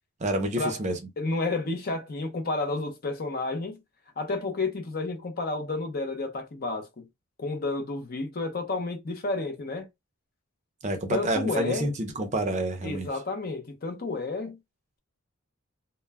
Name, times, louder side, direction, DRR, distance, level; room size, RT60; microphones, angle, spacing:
voice 1, 0.2-1.0 10.8-13.1, right 1 dB, 35° right, 0.5 m, -28 dB
voice 2, 1.2-3.8 4.2-7.1 7.4-9.9 11.1-11.9 12.8-14.6, left 3 dB, 45° left, 0.6 m, -31 dB
2.2 x 2.1 x 3.3 m
head